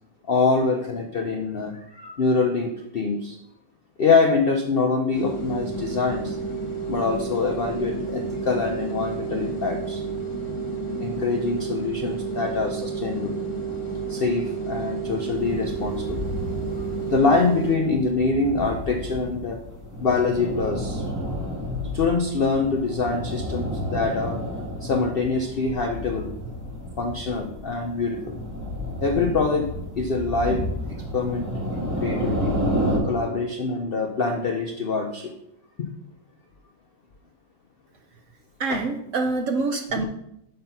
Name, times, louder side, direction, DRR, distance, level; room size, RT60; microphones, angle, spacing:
voice 1, 0.3-3.4 4.0-6.4 6.9-10.0 11.0-13.4 14.1-16.2 17.1-19.6 20.0-21.0 21.9-24.4 24.8-26.3 27.0-28.3 29.0-29.7 30.0-30.6 31.1-31.5 31.7-32.6 33.0-35.3 35.8-35.9 38.7-38.8 40.0-40.1, left 4 dB, 80° left, 4 dB, 0.5 m, -24 dB
sound 1, 5.1-17.8, right 4 dB, 45° left, 1.6 m, -31 dB
sound 2, 15.3-33.0, equal, 10° right, 1.9 m, -31 dB
voice 2, 38.6-40.0, right 3 dB, 65° right, 5 dB, 0.8 m, -25 dB
6.7 x 5.7 x 5.4 m, 0.80 s
omnidirectional pair, 1.9 m